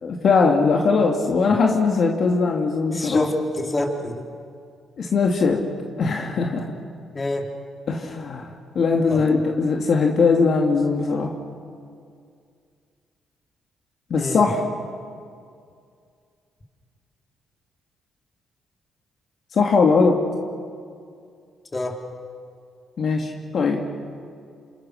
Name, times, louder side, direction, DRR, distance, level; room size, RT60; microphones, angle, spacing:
voice 1, 0.0-3.3 5.0-5.6 6.0-6.7 7.9-8.5 8.7-11.3 14.1-14.6 19.5-20.2 23.0-23.8, left 4 dB, 55° left, 1 dB, 2.4 m, -20 dB
voice 2, 2.9-4.2 7.1-7.5 9.1-9.2 14.2-14.5 21.7-22.0, left 2 dB, 25° left, 1 dB, 3.7 m, -26 dB
28.0 x 28.0 x 6.5 m, 2.3 s
cardioid pair, 90°, 0 cm